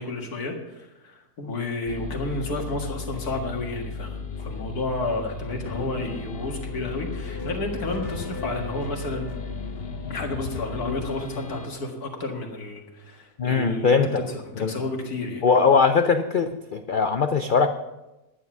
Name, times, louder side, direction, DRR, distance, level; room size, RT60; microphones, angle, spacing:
voice 1, 0.0-9.3 10.1-14.0 14.3-15.4, left 2 dB, 70° left, 1 dB, 2.4 m, -31 dB
sound 1, 1.9-11.7, left 4 dB, 45° left, 1.0 m, -34 dB
voice 2, 13.4-14.2 14.6-14.7 15.4-17.7, left 5 dB, 85° left, 8 dB, 0.4 m, -21 dB
11.5 x 9.6 x 6.0 m, 1.0 s
omnidirectional pair, 1.7 m